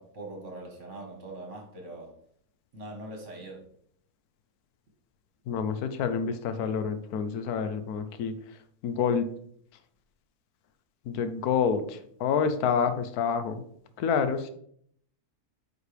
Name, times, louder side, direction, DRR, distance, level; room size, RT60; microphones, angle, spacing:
voice 1, 0.0-2.2 2.7-3.7, right 2 dB, 50° right, 1 dB, 1.7 m, -42 dB
voice 2, 5.5-8.3 8.8-9.3 11.1-13.5 14.0-14.5, left 6 dB, 80° left, 10 dB, 1.2 m, -28 dB
9.0 x 4.8 x 3.4 m, 0.65 s
omnidirectional pair, 1.6 m